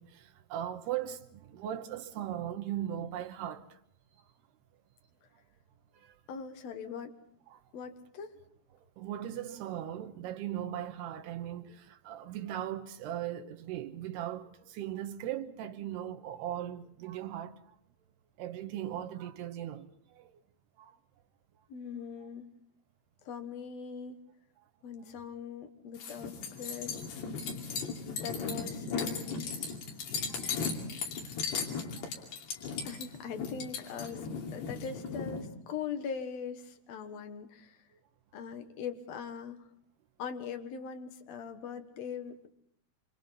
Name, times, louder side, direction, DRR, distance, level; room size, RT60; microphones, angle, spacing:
voice 1, 0.0-3.8 4.2-4.3 5.9-6.2 7.5-7.6 8.7-17.7 18.4-20.3 20.8-21.0 30.3-30.5 32.0-32.1 32.7-32.9, right 11 dB, 85° right, 3.1 m, -39 dB
voice 2, 6.3-7.1 7.7-8.3 21.7-22.5 23.2-24.2 24.8-26.9 28.2-29.5 32.8-37.8 38.3-39.7 40.2-42.5, left 6 dB, 55° left, 2.0 m, -41 dB
sound 1, 26.0-35.4, left 5 dB, 85° left, 4.7 m, -37 dB
27.0 x 26.5 x 4.1 m
omnidirectional pair, 4.6 m